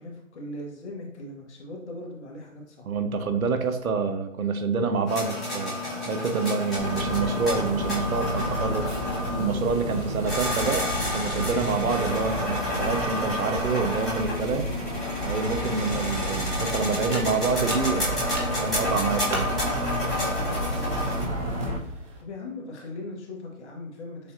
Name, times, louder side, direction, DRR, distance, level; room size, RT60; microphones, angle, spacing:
voice 1, 0.0-2.9 20.3-21.5 22.2-24.3, left 2 dB, 55° left, -1 dB, 1.4 m, -40 dB
voice 2, 2.9-8.9 9.4-14.7 15.2-18.2 18.6-19.5, right 4 dB, 80° right, 8 dB, 0.9 m, -27 dB
sound 1, 5.1-21.2, left 1 dB, ahead, 1.1 m, -30 dB
sound 2, 6.8-21.8, equal, 25° right, 0.9 m, -32 dB
sound 3, 15.7-22.2, right 2 dB, 60° right, 1.4 m, -40 dB
6.7 x 2.7 x 2.5 m, 0.85 s
hypercardioid pair, 160°, 41 cm